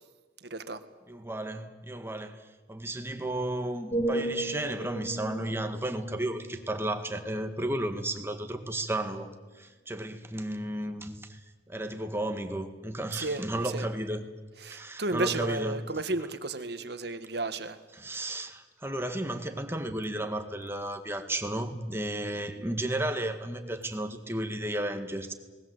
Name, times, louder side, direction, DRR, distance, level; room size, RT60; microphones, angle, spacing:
voice 1, 0.4-0.8 13.1-13.4 13.7-13.9 14.6-17.8, right 2 dB, 60° right, 10 dB, 1.6 m, -33 dB
voice 2, 1.1-9.3 9.6-11.4 11.7-14.3 14.7-15.8 17.9-25.3, right 1 dB, 15° right, 6 dB, 1.9 m, -33 dB
sound 1, 3.9-7.8 8.3-8.6, right 2 dB, 30° left, 7.9 m, -36 dB
27.5 x 20.0 x 8.1 m, 1.4 s
head